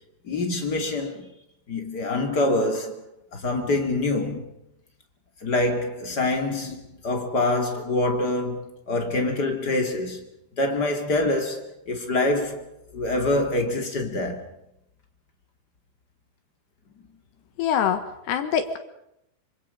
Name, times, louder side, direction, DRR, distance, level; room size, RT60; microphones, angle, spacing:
voice 1, 0.2-1.3 1.7-3.0 3.3-4.5 5.4-10.2 10.6-14.4, left 2 dB, 40° left, 1.5 m, -25 dB
voice 2, 17.6-18.8, left 8 dB, 65° left, 3.0 m, -24 dB
27.5 x 25.5 x 5.6 m
omnidirectional pair, 5.9 m